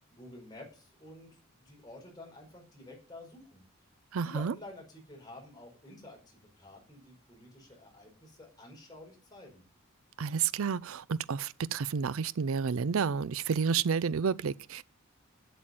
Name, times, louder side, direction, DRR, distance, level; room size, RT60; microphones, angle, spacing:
voice 1, 0.0-3.7 4.2-9.6, left 1 dB, 20° left, 4.8 m, -50 dB
voice 2, 4.1-4.5 10.2-14.8, right 6 dB, 75° right, 0.5 m, -30 dB
8.2 x 7.8 x 7.5 m
head